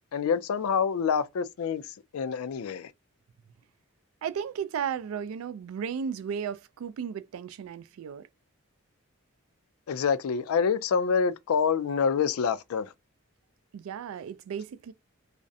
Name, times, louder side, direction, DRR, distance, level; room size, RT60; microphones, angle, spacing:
voice 1, 0.1-2.9 9.9-12.9, left 6 dB, 85° left, 0.4 m, -27 dB
voice 2, 4.2-8.3 13.7-14.9, right 7 dB, 75° right, 0.3 m, -34 dB
2.5 x 2.0 x 2.6 m
head